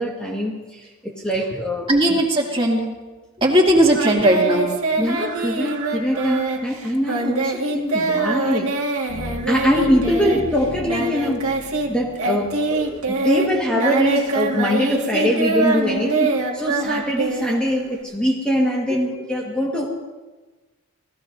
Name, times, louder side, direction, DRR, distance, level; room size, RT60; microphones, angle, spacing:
voice 1, 0.0-2.2 5.0-8.7 9.5-11.5 11.9-19.9, equal, 5° left, -3 dB, 1.5 m, -23 dB
voice 2, 1.9-2.8 3.4-4.7, right 1 dB, 25° right, -1 dB, 2.4 m, -17 dB
Singing, 3.9-11.9 12.2-18.0, right 3 dB, 75° right, 1.9 m, -24 dB
sound 1, 9.1-13.9, equal, 60° left, 6.0 m, -37 dB
27.0 x 18.0 x 2.7 m, 1.2 s
head